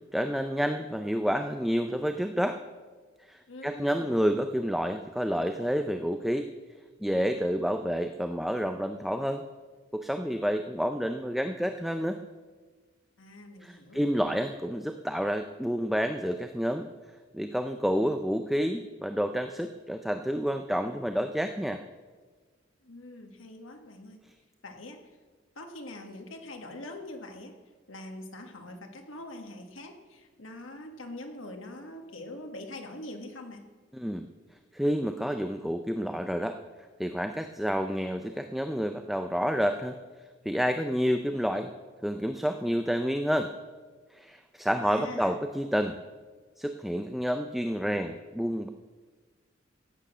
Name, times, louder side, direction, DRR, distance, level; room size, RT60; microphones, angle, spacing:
voice 1, 0.1-2.6 3.3-6.5 7.0-9.4 9.9-12.2 13.6-16.9 17.3-21.8 33.9-34.2 34.7-36.6 37.0-40.0 40.5-41.7 42.0-43.5 44.1-46.0 46.6-48.7, equal, ahead, 7 dB, 0.5 m, -29 dB
voice 2, 3.5-4.1 13.2-14.0 22.8-24.2 24.6-25.0 25.6-27.5 27.9-33.6 44.8-45.4, left 1 dB, 85° left, 4 dB, 1.8 m, -43 dB
15.0 x 8.9 x 6.2 m, 1.4 s
head